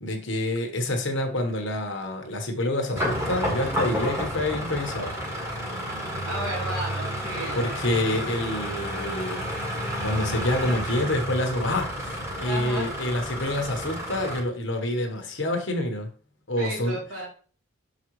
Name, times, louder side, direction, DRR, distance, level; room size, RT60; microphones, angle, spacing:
voice 1, 0.0-5.1 7.5-9.5 10.0-16.1 16.5-17.0, left 1 dB, 60° left, 4 dB, 1.2 m, -27 dB
sound 1, 3.0-14.4, equal, 15° right, 1.7 m, -31 dB
voice 2, 6.2-7.9 12.4-12.9 16.6-17.3, right 1 dB, 70° right, -3 dB, 3.1 m, -33 dB
6.9 x 5.0 x 3.1 m, 0.40 s
head